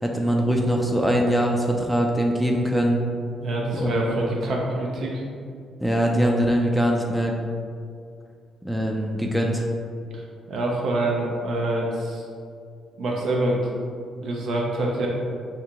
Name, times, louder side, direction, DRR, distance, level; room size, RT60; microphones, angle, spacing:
voice 1, 0.0-3.0 3.7-3.9 4.2-4.3 5.8-7.4 8.6-9.7, equal, 5° right, 0 dB, 0.3 m, -22 dB
voice 2, 3.4-5.2 10.1-10.2 10.5-12.3 13.0-13.6 14.2-15.1, right 1 dB, 70° right, -2 dB, 0.5 m, -26 dB
2.9 x 2.7 x 3.5 m, 2.3 s
cardioid pair, 90°, 0 cm